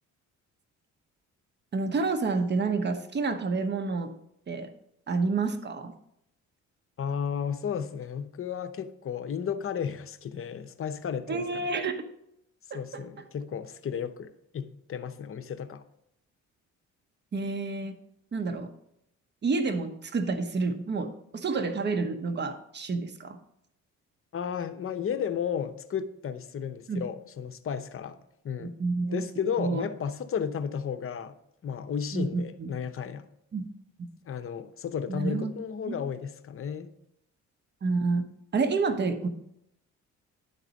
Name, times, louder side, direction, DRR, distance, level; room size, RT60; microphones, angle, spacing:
voice 1, 1.7-4.1 4.5-4.7 5.1-5.9 11.3-12.0 12.7-13.2 17.3-18.0 18.3-18.7 19.4-23.4 26.9-27.0 28.6-29.2 29.6-29.8 32.1-32.7 33.5-33.7 34.0-34.1 35.1-35.5 35.9-36.0 37.8-39.3, right 4 dB, 35° right, 1.0 m, -29 dB
voice 2, 7.0-11.7 12.7-15.8 24.3-28.2 28.4-28.8 29.1-31.4 31.6-33.3 34.2-36.9, left 7 dB, 45° left, 0.7 m, -33 dB
11.0 x 4.0 x 5.1 m
cardioid pair, 90°, 30 cm